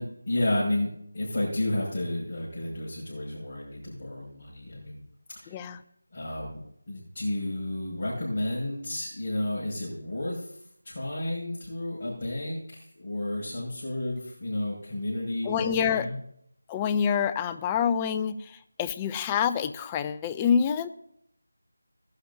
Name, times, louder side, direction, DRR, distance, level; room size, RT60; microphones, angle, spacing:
voice 1, 0.0-5.0 5.3-5.7 6.1-6.6 6.9-10.6 10.8-16.2, left 1 dB, 35° left, -8 dB, 5.8 m, -32 dB
voice 2, 15.5-16.1 16.7-18.4 18.8-20.9, left 7 dB, 15° left, 11 dB, 0.4 m, -26 dB
19.5 x 11.5 x 2.7 m, 0.70 s
figure-of-eight pair, 170°, 0 cm